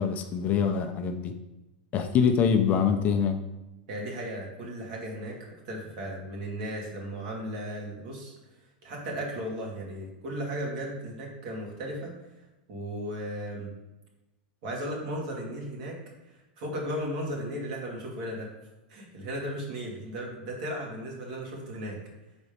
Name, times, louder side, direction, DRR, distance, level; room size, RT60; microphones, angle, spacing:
voice 1, 0.0-1.3 1.9-3.4, left 7 dB, 30° left, 6 dB, 0.5 m, -24 dB
voice 2, 3.9-5.4 5.6-8.3 8.8-12.1 12.7-13.7 14.6-16.0 16.6-18.5 18.9-22.0, equal, 60° right, -1 dB, 2.1 m, -35 dB
5.2 x 4.1 x 5.1 m, 1.0 s
supercardioid pair, 140°, 5 cm